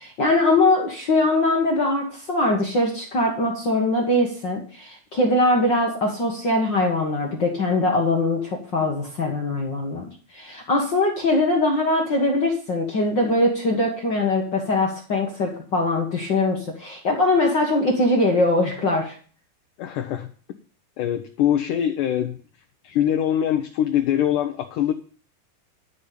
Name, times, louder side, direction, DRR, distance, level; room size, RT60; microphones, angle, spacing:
voice 1, 0.0-19.1, left 2 dB, 50° left, 1 dB, 1.3 m, -22 dB
voice 2, 19.8-20.3 21.0-22.4 22.8-24.9, left 10 dB, 75° left, 6 dB, 2.1 m, -23 dB
12.0 x 5.3 x 8.4 m, 0.41 s
omnidirectional pair, 4.3 m